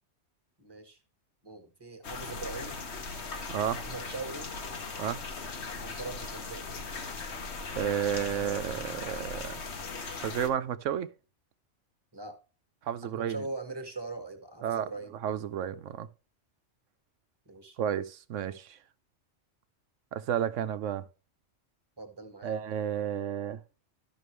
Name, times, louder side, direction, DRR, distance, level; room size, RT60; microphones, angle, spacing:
voice 1, 0.6-1.0 1.4-2.8 3.8-4.5 5.7-6.7 12.1-12.4 13.0-15.1 17.4-17.8 22.0-22.6, right 3 dB, 20° right, 1.5 m, -41 dB
sound 1, 2.0-10.5, left 4 dB, 65° left, 1.5 m, -39 dB
voice 2, 3.5-3.8 5.0-5.2 7.7-9.6 10.2-11.1 12.9-13.4 14.6-14.9 15.2-16.1 17.8-18.8 20.1-21.0 22.4-23.6, right 9 dB, 90° right, 1.1 m, -31 dB
12.5 x 6.0 x 3.3 m
omnidirectional pair, 1.2 m